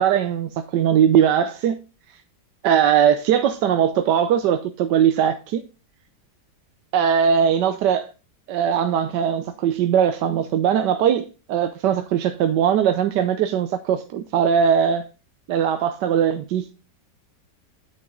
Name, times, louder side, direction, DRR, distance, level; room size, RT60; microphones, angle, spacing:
voice 1, 0.0-1.8 2.6-5.6 6.9-8.1 8.5-15.1 15.5-16.7, right 8 dB, 80° right, 1.3 m, -20 dB
9.4 x 6.4 x 3.7 m
omnidirectional pair, 1.9 m